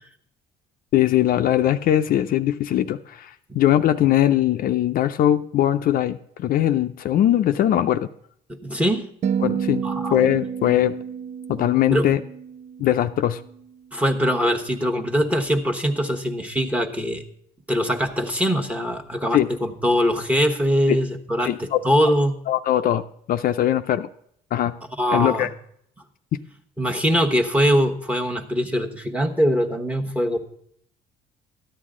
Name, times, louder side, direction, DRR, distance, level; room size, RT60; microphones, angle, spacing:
voice 1, 0.9-3.3 3.5-8.1 9.4-9.8 10.1-11.0 11.5-12.2 12.8-13.4 19.3-19.5 21.4-21.8 22.5-23.0 23.3-24.1 24.5-24.7 25.1-25.5, left 12 dB, 60° left, 8 dB, 0.5 m, -20 dB
voice 2, 8.5-9.0 9.8-10.2 11.9-12.1 13.9-17.2 17.7-22.4 25.0-25.5 26.8-30.4, equal, 10° right, 5 dB, 1.1 m, -22 dB
sound 1, 9.2-13.5, right 7 dB, 45° right, 0.4 m, -30 dB
13.5 x 9.5 x 3.7 m, 0.67 s
cardioid pair, 110°, 17 cm